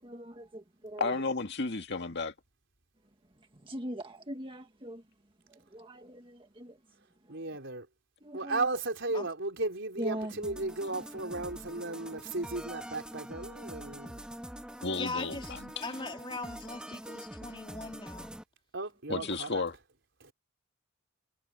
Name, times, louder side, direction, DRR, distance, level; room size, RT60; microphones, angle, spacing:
voice 1, 0.0-1.1 3.6-5.0 5.5-6.8 7.2-7.4 8.2-8.7 10.0-10.3 10.9-11.0, right 1 dB, 25° right, 1.7 m, -41 dB
voice 2, 1.0-2.3 14.8-15.4 19.1-19.7, left 3 dB, 55° left, 2.0 m, -32 dB
voice 3, 7.3-7.9 8.3-14.2 18.7-19.6 20.2-20.3, right 2 dB, 60° right, 4.7 m, -35 dB
sound 1, 10.4-18.4, equal, 5° right, 1.8 m, -44 dB
voice 4, 15.0-15.5 15.8-18.3 19.2-19.3, left 3 dB, 25° left, 3.4 m, -40 dB
head